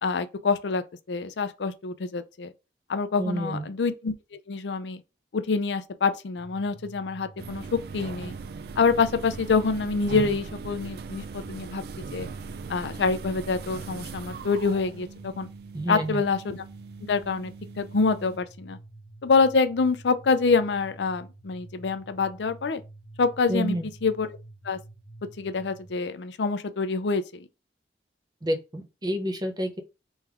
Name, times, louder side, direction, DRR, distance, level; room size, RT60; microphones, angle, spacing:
voice 1, 0.0-2.5 2.9-5.0 5.3-8.3 8.8-12.3 12.7-15.5 15.9-16.6 17.1-18.8 19.2-22.8 23.2-23.8 24.0-24.3 24.6-24.8 25.4-27.5, left 4 dB, 80° left, 0.5 m, -26 dB
voice 2, 3.2-3.7 15.7-16.2 23.5-23.9 28.4-29.8, equal, 25° right, 0.6 m, -29 dB
sound 1, 6.4-25.9, right 2 dB, 25° left, 1.2 m, -48 dB
sound 2, 7.4-18.4, right 5 dB, 60° right, 0.3 m, -40 dB
3.4 x 3.1 x 3.4 m
head